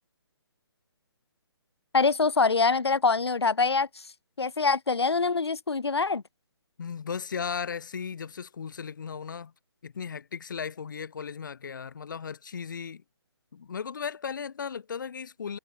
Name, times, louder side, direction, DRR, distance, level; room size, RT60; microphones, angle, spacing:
voice 1, 1.9-3.9 4.4-6.2, left 4 dB, 70° left, 0.7 m, -24 dB
voice 2, 6.8-9.5 9.8-13.0 13.5-15.6, left 6 dB, 45° left, 0.9 m, -36 dB
figure-of-eight pair, 140°, 14 cm